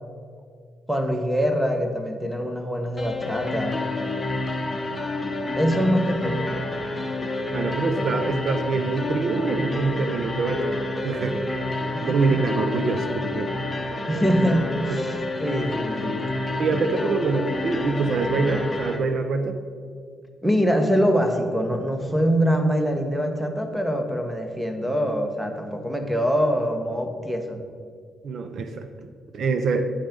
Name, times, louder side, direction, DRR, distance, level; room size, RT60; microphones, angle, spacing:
voice 1, 0.9-3.8 5.5-6.5 11.9-12.4 14.1-16.2 20.4-27.6, equal, 5° right, 5 dB, 1.2 m, -24 dB
sound 1, 3.0-19.0, left 2 dB, 20° left, 1.2 m, -29 dB
voice 2, 7.5-10.8 11.0-11.4 12.0-13.5 14.9-15.0 16.6-19.6 28.2-29.8, right 4 dB, 60° right, 8 dB, 0.7 m, -25 dB
10.0 x 5.3 x 5.3 m, 2.1 s
cardioid pair, 90°, 0 cm